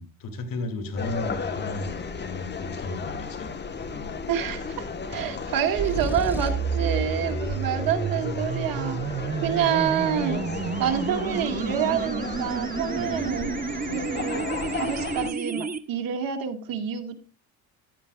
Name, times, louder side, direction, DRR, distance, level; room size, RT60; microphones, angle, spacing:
voice 1, 0.0-3.5 3.8-4.1 10.4-10.8 12.9-13.5 15.0-15.1, left 2 dB, 60° left, 7 dB, 2.4 m, -35 dB
sound 1, 0.9-15.3, left 5 dB, 30° left, 1.2 m, -34 dB
voice 2, 4.3-9.0 9.4-10.4 10.8-13.5 13.8-14.5 14.7-17.2, right 9 dB, 65° right, 5 dB, 1.8 m, -28 dB
sound 2, 5.8-6.7, right 1 dB, 5° right, 0.4 m, -35 dB
sound 3, 5.8-15.8, right 5 dB, 25° right, 0.8 m, -31 dB
14.5 x 9.8 x 2.3 m, 0.33 s
cardioid pair, 95°, 37 cm